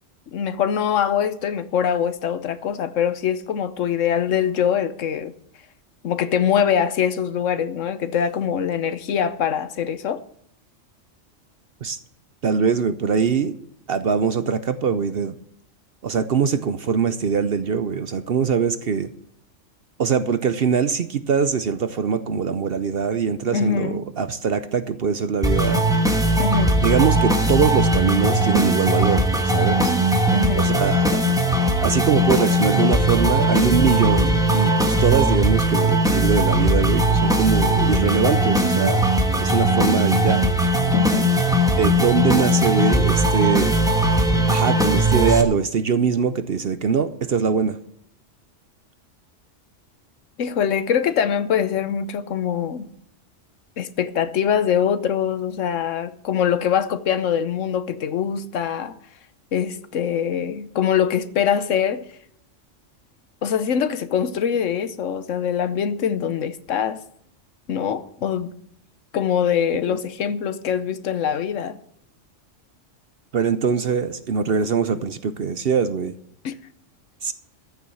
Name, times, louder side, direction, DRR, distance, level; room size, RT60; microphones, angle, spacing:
voice 1, 0.3-5.3 6.0-10.2 23.5-24.1 26.4-26.8 30.3-30.7 40.9-41.3 50.4-52.9 53.8-59.0 59.5-62.1 63.4-67.0 67.7-68.5 69.1-71.8 76.4-76.5, left 8 dB, 75° left, 1.2 m, -23 dB
voice 2, 12.4-13.5 13.9-15.3 16.0-19.1 20.0-25.8 26.8-29.9 30.6-31.2 31.8-39.1 39.4-40.4 41.8-43.8 44.5-47.8 69.9-70.0 73.3-76.1 77.2-77.3, right 6 dB, 55° right, 0.8 m, -22 dB
sound 1, 25.4-45.4, right 1 dB, 5° right, 1.3 m, -19 dB
14.0 x 7.0 x 7.8 m
omnidirectional pair, 1.3 m